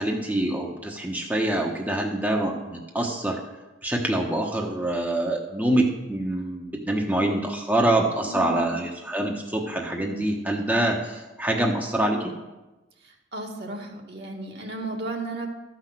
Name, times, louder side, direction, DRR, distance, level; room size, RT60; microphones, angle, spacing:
voice 1, 0.0-3.4 3.8-12.3, right 1 dB, 10° right, 0 dB, 1.0 m, -25 dB
voice 2, 8.3-8.8 13.0-15.5, right 2 dB, 60° right, 0 dB, 2.0 m, -34 dB
13.0 x 6.0 x 7.5 m, 1.1 s
head